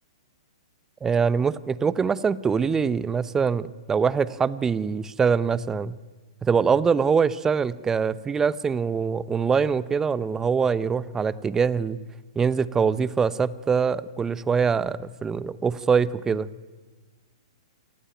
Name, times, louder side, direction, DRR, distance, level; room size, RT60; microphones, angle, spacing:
voice 1, 1.0-6.0 6.4-12.0 12.3-16.5, right 6 dB, 15° right, 17 dB, 1.0 m, -23 dB
27.5 x 19.5 x 9.3 m, 1.4 s
hypercardioid pair, 115°, 3 cm